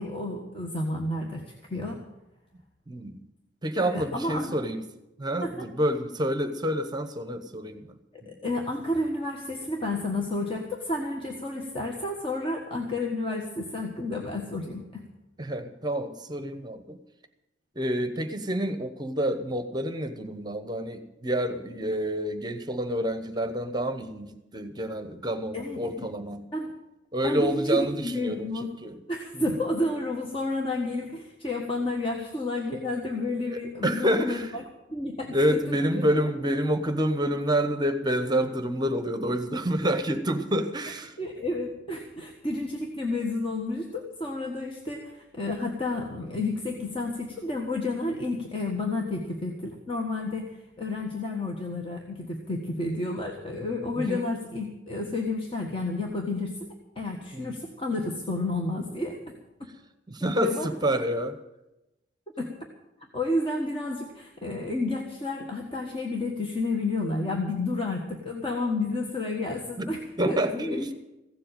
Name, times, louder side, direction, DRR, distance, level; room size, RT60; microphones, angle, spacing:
voice 1, 0.0-1.4 1.7-2.0 3.8-4.5 5.4-5.7 8.1-15.0 25.5-26.1 26.5-26.7 27.2-28.7 29.1-34.6 34.9-36.3 41.2-59.3 59.6-59.7 60.2-60.7 62.4-62.5 63.1-70.4 70.7-70.9, left 2 dB, 30° left, 0 dB, 1.4 m, -31 dB
voice 2, 2.9-3.2 3.6-4.8 5.2-7.9 8.2-8.4 15.4-17.0 17.7-26.5 27.1-29.0 29.3-29.4 33.4-34.6 35.3-41.2 54.0-54.3 57.3-57.5 60.1-61.4 69.8-69.9 70.2-70.9, equal, 25° right, 9 dB, 0.9 m, -28 dB
15.5 x 7.7 x 9.0 m, 0.94 s
head